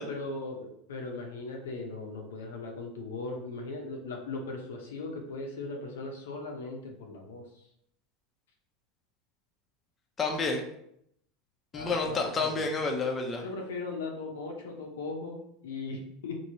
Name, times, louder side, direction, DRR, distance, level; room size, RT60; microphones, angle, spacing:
voice 1, 0.0-7.4 11.7-12.7 13.4-16.4, left 3 dB, 85° left, 1 dB, 0.6 m, -38 dB
voice 2, 10.2-10.6 11.7-13.4, left 3 dB, 25° left, 2 dB, 0.5 m, -29 dB
2.9 x 2.6 x 2.7 m, 0.73 s
hypercardioid pair, 100°, 0 cm